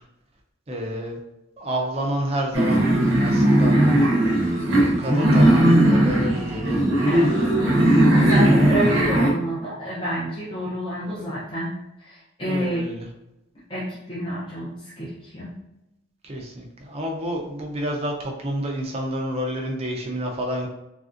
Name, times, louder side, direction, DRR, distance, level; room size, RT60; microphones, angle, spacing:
voice 1, 0.7-1.2 1.6-3.8 4.7-6.9 8.0-8.4 11.1-11.3 12.4-13.1 16.2-20.7, equal, 30° right, 0 dB, 0.4 m, -29 dB
sound 1, 2.5-9.3, right 1 dB, 75° right, 0.7 m, -18 dB
voice 2, 7.0-7.5 8.1-11.7 12.0-12.9 13.7-15.5, equal, 25° left, -9 dB, 0.6 m, -29 dB
3.2 x 2.5 x 2.5 m, 0.92 s
head